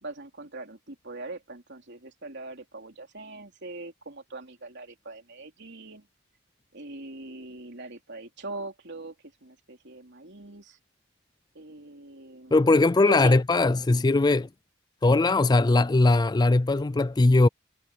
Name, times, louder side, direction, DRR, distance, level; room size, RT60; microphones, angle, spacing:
voice 1, 0.0-6.1 6.7-9.2 9.4-10.8 11.5-12.7 13.0-13.3, right 2 dB, 55° right, 3.5 m, -41 dB
voice 2, 12.5-14.5 15.0-17.5, left 2 dB, 20° left, 0.4 m, -20 dB
head